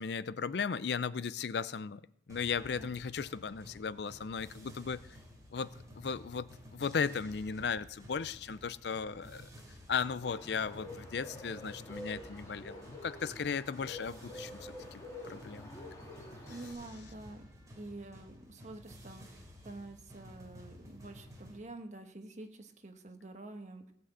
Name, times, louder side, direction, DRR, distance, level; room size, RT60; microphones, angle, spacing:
voice 1, 0.0-2.0 2.3-5.0 5.5-9.5 9.9-15.7, left 6 dB, 65° left, 0.4 m, -36 dB
sound 1, 2.3-21.6, equal, 20° right, 3.0 m, -53 dB
Bird, 10.2-16.7, left 1 dB, 15° left, 3.0 m, -48 dB
voice 2, 16.5-17.4 17.8-23.9, right 2 dB, 40° right, 1.3 m, -48 dB
17.5 x 6.1 x 7.9 m
head